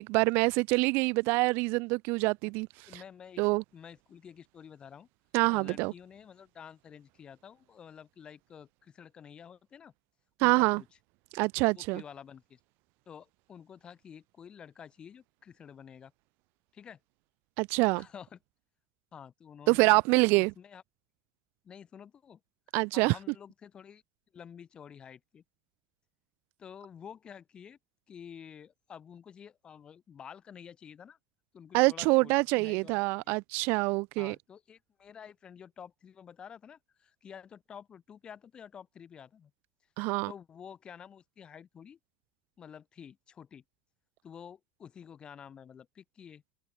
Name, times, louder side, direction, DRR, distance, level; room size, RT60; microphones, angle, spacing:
voice 1, 0.0-2.7 2.9-3.0 3.4-3.6 5.3-5.9 10.4-10.8 11.3-12.0 17.6-18.0 19.7-20.5 22.7-23.1 31.7-34.3 40.0-40.3, right 27 dB, 45° right, 0.6 m, -26 dB
voice 2, 2.9-5.1 5.5-9.9 10.4-10.9 11.6-12.6 13.1-16.1 16.7-17.0 18.0-18.4 19.1-20.0 20.3-20.8 21.6-22.4 22.9-24.0 24.3-25.4 26.6-27.8 28.1-31.2 31.5-33.3 34.2-39.5 40.0-42.0 42.6-43.6 44.2-46.4, left 8 dB, 20° left, 1.6 m, -50 dB
cardioid pair, 175°, 5 cm